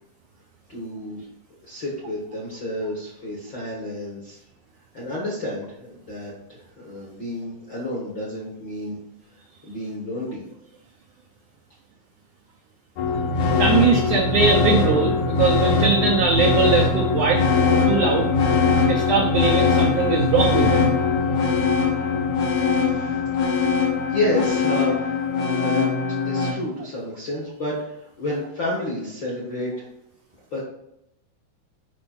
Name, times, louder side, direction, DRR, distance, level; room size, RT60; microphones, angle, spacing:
voice 1, 0.7-1.2 1.6-4.4 4.9-9.0 9.6-10.4 22.7-23.2 24.1-25.1 25.5-25.8 26.2-29.8 30.5-30.6, left 1 dB, 55° left, -4 dB, 1.3 m, -30 dB
sound 1, 13.0-26.5, left 4 dB, 70° left, 1.9 m, -21 dB
voice 2, 13.6-17.4 17.7-18.3 18.9-21.0, right 5 dB, 85° right, 2 dB, 1.7 m, -21 dB
7.7 x 5.3 x 4.3 m, 0.84 s
omnidirectional pair, 4.5 m